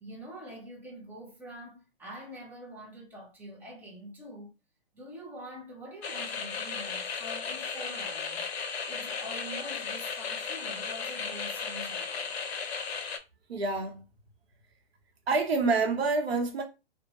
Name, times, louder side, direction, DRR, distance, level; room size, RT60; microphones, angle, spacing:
voice 1, 0.0-4.5 4.9-12.3, equal, 5° right, 0.5 m, -45 dB
sound 1, 6.0-13.2, left 5 dB, 80° left, 0.5 m, -35 dB
voice 2, 13.5-14.0 15.3-16.6, right 3 dB, 75° right, 0.9 m, -27 dB
2.6 x 2.2 x 2.8 m
hypercardioid pair, 130°, 31 cm